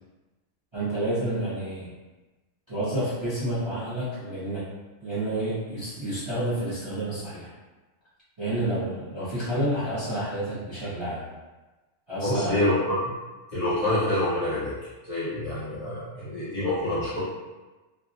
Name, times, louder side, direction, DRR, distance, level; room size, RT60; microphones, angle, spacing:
voice 1, 0.7-1.9 2.7-4.6 5.0-7.5 8.4-11.2 12.1-12.7, right 1 dB, 30° right, -11 dB, 0.6 m, -29 dB
voice 2, 12.2-13.0 13.5-14.7 15.0-17.2, left 1 dB, 35° left, -12 dB, 0.7 m, -26 dB
2.3 x 2.2 x 2.5 m, 1.2 s
omnidirectional pair, 1.3 m